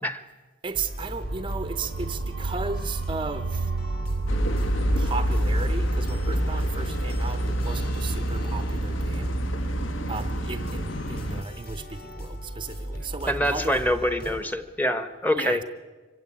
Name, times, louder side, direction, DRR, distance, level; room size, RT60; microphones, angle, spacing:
voice 1, 0.6-3.7 5.0-9.3 10.1-13.8 15.4-15.6, right 4 dB, 25° right, 10 dB, 0.6 m, -35 dB
sound 1, 0.7-14.4, equal, 45° left, 4.2 m, -38 dB
sound 2, 1.2-13.2, right 3 dB, 70° right, 0.7 m, -34 dB
sound 3, 4.3-11.4, equal, 65° left, 1.3 m, -27 dB
voice 2, 13.3-15.6, equal, 10° left, 11 dB, 1.0 m, -25 dB
25.5 x 16.0 x 10.0 m, 1.4 s
head